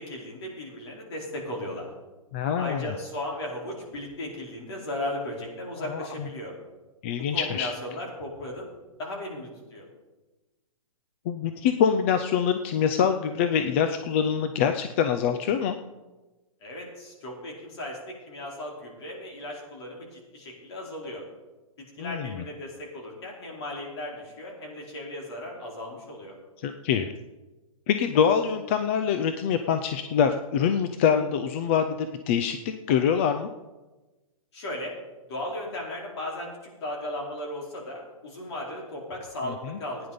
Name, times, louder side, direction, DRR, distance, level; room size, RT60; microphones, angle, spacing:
voice 1, 0.0-1.9 2.6-6.5 7.2-8.7 9.0-9.8 16.6-21.2 21.8-26.4 34.5-35.0 35.3-40.1, left 1 dB, 50° left, -2 dB, 4.8 m, -36 dB
voice 2, 2.3-2.8 5.9-6.3 7.0-7.7 11.3-15.7 22.0-22.4 26.6-27.1 27.9-33.5 39.7-39.8, left 7 dB, 20° left, 8 dB, 0.4 m, -25 dB
15.5 x 9.7 x 5.2 m, 1.1 s
hypercardioid pair, 165°, 18 cm